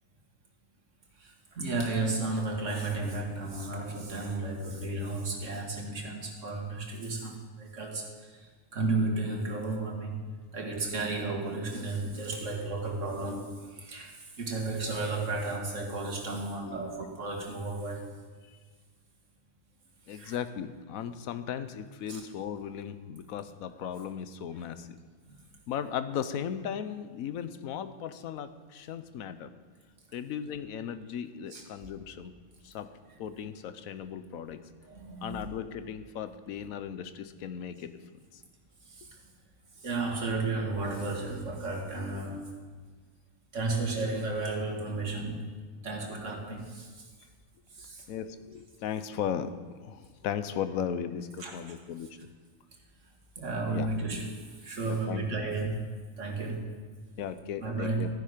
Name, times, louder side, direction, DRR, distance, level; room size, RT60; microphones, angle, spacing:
voice 1, 1.2-10.2 10.5-18.1 20.1-20.4 22.1-22.2 31.5-31.6 34.8-35.4 38.9-39.1 39.8-42.5 43.5-45.5 45.8-47.1 47.8-48.0 51.4-51.6 53.4-54.3 54.6-56.8 57.6-58.1, right 3 dB, 55° right, 1 dB, 2.2 m, -33 dB
voice 2, 20.1-25.0 25.7-29.5 30.1-32.3 32.6-32.9 33.2-34.6 35.2-38.4 48.1-52.2 53.7-53.9 54.8-55.3 57.2-58.1, left 8 dB, 75° left, 11 dB, 1.1 m, -37 dB
14.5 x 10.0 x 5.1 m, 1.5 s
omnidirectional pair, 1.5 m